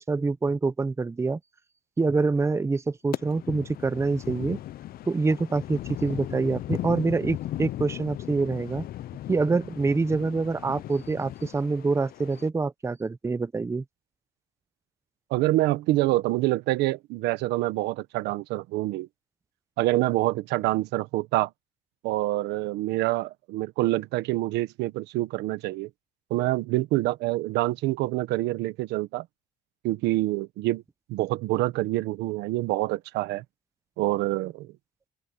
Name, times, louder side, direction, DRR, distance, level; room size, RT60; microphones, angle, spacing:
voice 1, 0.0-1.4 2.0-4.6 5.1-8.9 9.3-13.8, right 3 dB, 15° right, 0.7 m, -26 dB
sound 1, 3.1-12.5, left 13 dB, 60° left, 0.7 m, -37 dB
voice 2, 15.3-19.1 19.8-21.5 22.0-25.9 26.3-29.2 29.8-30.8 31.1-33.4 34.0-34.7, right 17 dB, 90° right, 1.3 m, -26 dB
open air
cardioid pair, 110°, 17 cm